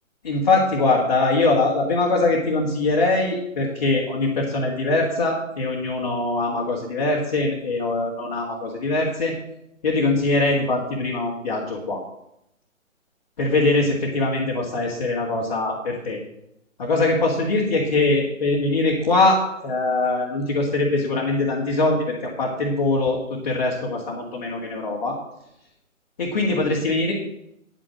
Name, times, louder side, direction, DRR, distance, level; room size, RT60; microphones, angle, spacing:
voice 1, 0.2-9.3 9.8-12.0 13.4-16.2 16.8-25.2 26.2-27.1, left 2 dB, 30° left, -3 dB, 1.9 m, -22 dB
9.6 x 6.3 x 7.7 m, 0.79 s
figure-of-eight pair, 150°, 41 cm